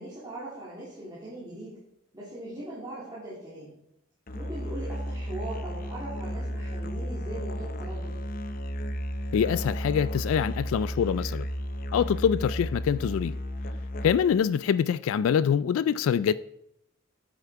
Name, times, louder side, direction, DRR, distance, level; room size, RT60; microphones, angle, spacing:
voice 1, 0.0-1.8 2.1-3.7 4.3-8.2, right 1 dB, 20° right, 2.9 m, -40 dB
Musical instrument, 4.3-14.4, equal, 45° left, 0.6 m, -33 dB
voice 2, 9.3-11.5 11.9-13.4 14.0-16.3, left 8 dB, 85° left, 0.3 m, -25 dB
9.2 x 9.0 x 4.7 m
head